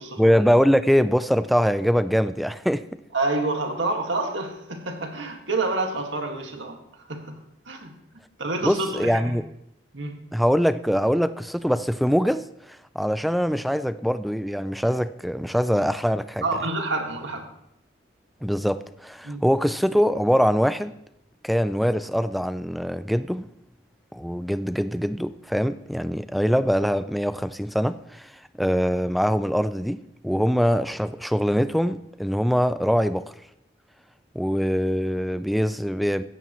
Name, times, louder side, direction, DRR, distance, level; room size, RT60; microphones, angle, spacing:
voice 1, 0.2-2.8 8.6-9.5 10.3-12.5 13.0-16.4 18.4-20.9 21.4-23.5 24.1-28.3 28.6-33.3 34.4-36.2, equal, ahead, 0.3 m, -23 dB
voice 2, 3.1-7.4 7.7-7.9 8.4-9.4 9.9-10.2 16.4-17.5 19.2-19.4, right 2 dB, 90° right, 1.9 m, -28 dB
16.5 x 14.0 x 3.1 m
head